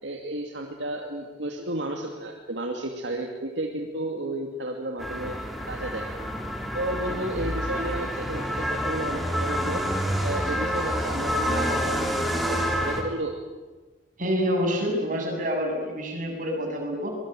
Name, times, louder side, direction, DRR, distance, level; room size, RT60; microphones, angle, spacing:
voice 1, 0.0-5.4 5.7-6.1 6.7-9.9 10.2-13.3, right 1 dB, 70° right, 1 dB, 2.5 m, -32 dB
sound 1, 5.0-13.0, equal, ahead, 3.6 m, -28 dB
voice 2, 14.2-17.1, equal, 45° right, 1 dB, 7.7 m, -27 dB
25.0 x 21.5 x 9.2 m, 1.2 s
head